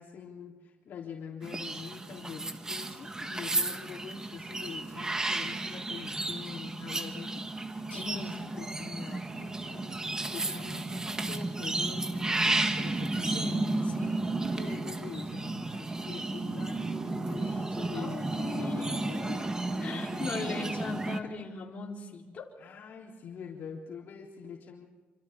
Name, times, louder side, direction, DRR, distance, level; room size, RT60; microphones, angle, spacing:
voice 1, 0.0-9.9 10.3-13.4 14.3-18.2 18.5-19.4 19.7-20.8 21.2-21.4 22.6-24.9, left 6 dB, 60° left, -3 dB, 3.7 m, -45 dB
sound 1, 1.4-21.2, right 2 dB, 15° right, 1.5 m, -33 dB
voice 2, 7.9-8.3 13.2-14.3 17.9-19.5 19.8-22.5, left 4 dB, 40° left, -2 dB, 4.3 m, -39 dB
27.5 x 25.5 x 3.8 m, 1.3 s
cardioid pair, 125°, 4 cm